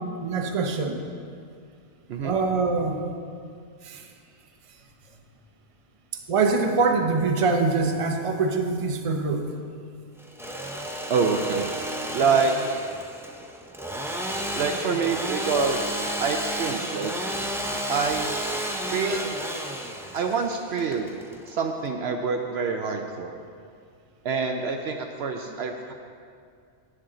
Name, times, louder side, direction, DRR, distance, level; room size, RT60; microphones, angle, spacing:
voice 1, 0.2-1.0 2.2-3.0 3.8-4.1 6.3-9.5 25.5-25.6, right 4 dB, 30° right, 4 dB, 0.7 m, -24 dB
Engine / Sawing, 10.2-21.9, right 1 dB, 5° right, 0.3 m, -32 dB
voice 2, 11.1-11.7 12.1-12.5 14.5-17.2 17.9-18.4 18.9-19.4 20.1-21.1 21.5-23.4 24.2-25.9, right 5 dB, 65° right, 4 dB, 0.8 m, -26 dB
11.0 x 8.7 x 3.8 m, 2.3 s
omnidirectional pair, 1.3 m